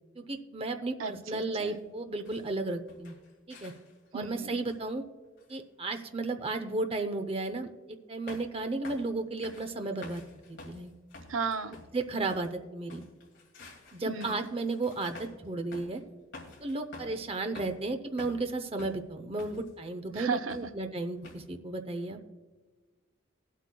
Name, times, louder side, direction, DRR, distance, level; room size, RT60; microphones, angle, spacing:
voice 1, 0.2-3.1 3.5-3.7 4.1-5.0 5.5-7.7 8.1-10.2 10.5-10.9 11.9-13.0 13.9-16.0 16.6-22.2, right 2 dB, 30° right, 7 dB, 0.6 m, -34 dB
voice 2, 1.0-1.8 4.1-4.6 11.3-11.8 14.1-14.5 20.1-20.6, right 5 dB, 75° right, 9 dB, 0.6 m, -35 dB
sound 1, 1.7-1.8 2.2-2.5 2.9-4.1 4.7-4.9 5.4-5.6 6.8-6.9 8.3-8.6 8.8-9.2 9.4-12.6 12.9-15.5 15.7-16.0 16.3-17.2 17.5-18.5 18.8-19.7 20.5-20.8 21.2-21.5, left 2 dB, 60° left, 2.3 m, -50 dB
21.0 x 8.3 x 2.2 m, 1.3 s
head